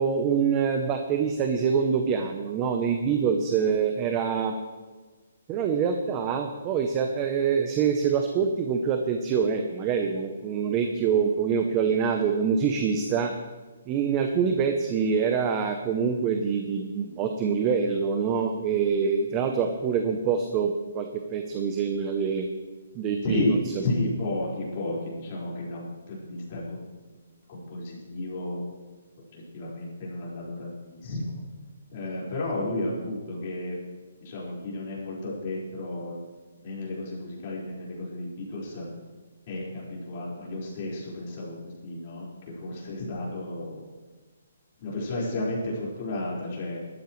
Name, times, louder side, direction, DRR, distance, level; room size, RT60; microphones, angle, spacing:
voice 1, 0.0-4.6 5.5-13.3 13.9-22.5 22.9-23.8 34.4-34.5, right 6 dB, 20° right, 5 dB, 0.7 m, -25 dB
voice 2, 23.2-26.8 27.5-28.6 29.3-31.3 31.9-33.8 34.2-36.2 36.6-38.8 39.5-41.6 41.8-42.3 42.6-43.8 44.8-46.8, left 2 dB, 30° left, -5 dB, 4.9 m, -32 dB
19.0 x 13.0 x 3.2 m, 1.3 s
hypercardioid pair, 170°, 0 cm